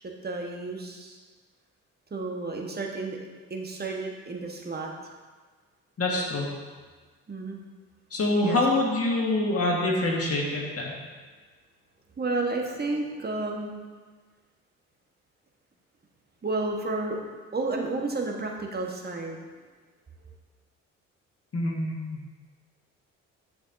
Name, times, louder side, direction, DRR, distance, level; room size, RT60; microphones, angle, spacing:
voice 1, 0.2-1.2 2.1-3.2 3.5-4.9 7.3-7.6 8.4-8.6 12.2-13.8 16.4-19.4, right 3 dB, 25° right, 1 dB, 1.4 m, -31 dB
voice 2, 6.0-6.5 8.1-10.9 21.5-22.0, left 2 dB, 40° left, -2 dB, 1.7 m, -25 dB
8.9 x 6.7 x 2.7 m, 1.4 s
hypercardioid pair, 50°, 37 cm